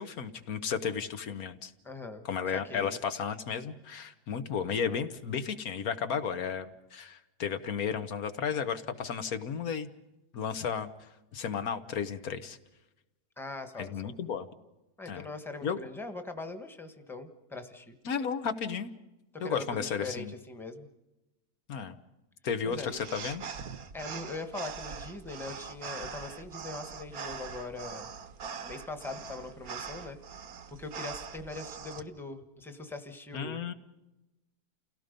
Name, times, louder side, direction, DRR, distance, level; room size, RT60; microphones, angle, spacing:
voice 1, 0.0-1.7 2.2-9.9 10.3-12.6 13.8-14.5 15.1-15.2 15.6-15.8 18.0-18.9 19.4-20.3 21.7-22.0 22.4-23.4 33.3-33.7, left 6 dB, 65° left, 9 dB, 1.5 m, -33 dB
voice 2, 1.8-3.0 13.4-14.1 15.0-17.9 19.4-20.9 22.6-23.0 23.9-28.1 28.6-33.6, left 3 dB, ahead, 7 dB, 1.3 m, -41 dB
sound 1, 22.7-32.0, right 6 dB, 65° right, 1.5 m, -42 dB
29.0 x 17.0 x 5.3 m, 0.99 s
omnidirectional pair, 1.7 m